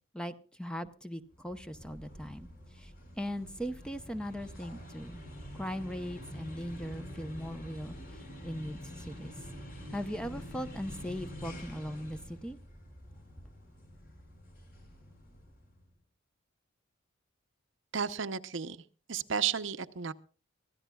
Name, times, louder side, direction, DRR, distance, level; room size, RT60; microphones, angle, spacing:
voice 1, 0.1-5.2 5.5-9.3 9.9-12.6, equal, 5° left, 10 dB, 0.7 m, -39 dB
sound 1, 1.3-15.8, equal, 45° left, 5.0 m, -47 dB
voice 2, 17.9-18.8 19.1-20.1, right 7 dB, 60° right, 12 dB, 0.8 m, -33 dB
23.5 x 15.5 x 2.3 m, 0.39 s
head